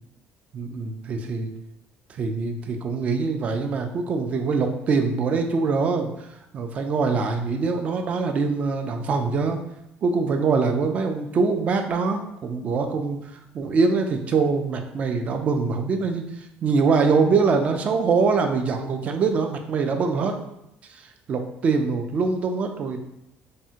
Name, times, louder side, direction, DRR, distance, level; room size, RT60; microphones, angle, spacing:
voice 1, 0.5-1.5 2.1-6.3 6.5-9.6 10.0-20.3 20.9-23.0, right 4 dB, 35° right, 5 dB, 0.3 m, -24 dB
3.4 x 2.0 x 2.8 m, 0.83 s
cardioid pair, 145°, 4 cm